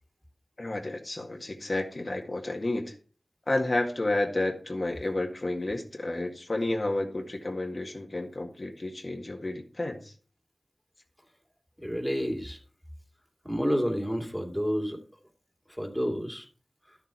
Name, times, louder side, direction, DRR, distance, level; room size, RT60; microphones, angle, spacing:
voice 1, 0.6-2.9 3.5-10.1, left 2 dB, 50° left, 1 dB, 1.9 m, -31 dB
voice 2, 11.8-12.6 13.4-15.0 15.7-16.5, equal, ahead, 3 dB, 2.6 m, -29 dB
12.0 x 7.1 x 4.5 m, 0.40 s
wide cardioid pair, 45°, 0 cm